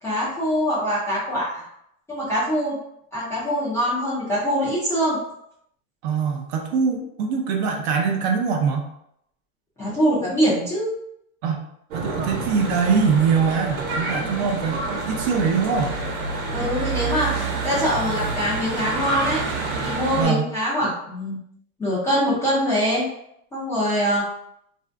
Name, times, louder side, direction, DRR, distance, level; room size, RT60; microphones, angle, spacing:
voice 1, 0.0-1.5 2.1-2.8 3.1-5.2 9.8-10.9 14.2-14.4 16.5-19.4 19.8-21.4 21.8-23.1 23.5-24.2, equal, 5° left, -10 dB, 0.4 m, -23 dB
voice 2, 6.0-8.9 11.4-11.7 11.9-16.0 20.1-20.5, right 5 dB, 45° right, 2 dB, 0.5 m, -23 dB
Church bell / Traffic noise roadway noise, 11.9-20.2, right 3 dB, 65° right, 1.0 m, -28 dB
2.6 x 2.3 x 3.3 m, 0.74 s
supercardioid pair, 145°, 44 cm